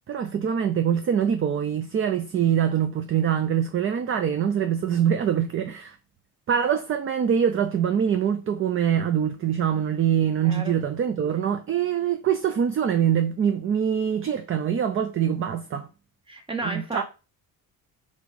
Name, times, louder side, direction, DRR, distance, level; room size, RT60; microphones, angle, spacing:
voice 1, 0.1-6.0 6.5-15.9 16.6-17.0, right 8 dB, 35° right, 0.5 m, -24 dB
voice 2, 10.4-10.8 16.3-17.0, right 2 dB, 15° right, 1.2 m, -32 dB
4.7 x 4.0 x 5.2 m
cardioid pair, 155°, 37 cm